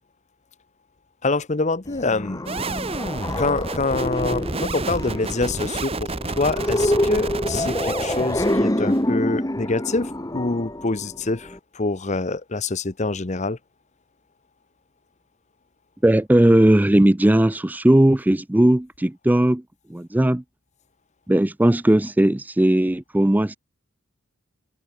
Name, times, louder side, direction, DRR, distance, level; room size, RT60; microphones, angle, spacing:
voice 1, 1.2-2.5 3.4-13.6, left 3 dB, 30° left, 0.9 m, -26 dB
sound 1, 1.9-11.6, left 1 dB, 15° left, 1.4 m, -26 dB
sound 2, 2.5-9.1, right 2 dB, 25° right, 1.3 m, -30 dB
voice 2, 16.0-19.6 19.9-20.4 21.3-23.6, right 1 dB, 10° right, 0.3 m, -18 dB
head